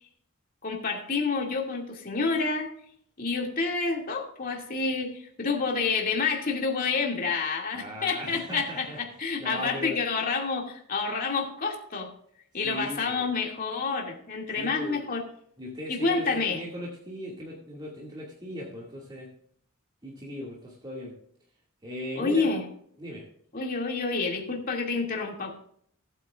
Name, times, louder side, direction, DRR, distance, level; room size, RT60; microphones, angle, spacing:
voice 1, 0.6-2.7 3.2-12.1 12.5-15.2 15.9-16.6 22.2-22.6 23.5-25.5, left 4 dB, 40° left, 0 dB, 2.4 m, -28 dB
voice 2, 7.7-9.0 9.4-10.0 12.6-13.3 14.6-15.0 15.6-19.3 20.0-21.2 21.8-22.5 23.0-23.3, equal, 20° right, -4 dB, 2.2 m, -38 dB
18.5 x 8.9 x 2.5 m, 0.64 s
head